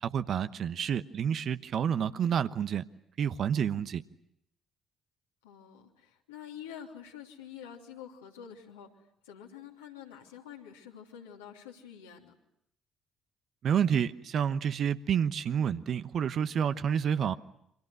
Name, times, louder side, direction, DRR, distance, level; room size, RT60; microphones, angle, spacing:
voice 1, 0.0-2.8 3.2-4.0 13.6-17.3, right 8 dB, 50° right, 1.0 m, -29 dB
voice 2, 5.4-12.3, left 9 dB, 80° left, 3.0 m, -47 dB
29.0 x 25.0 x 6.5 m
figure-of-eight pair, 50°, 0 cm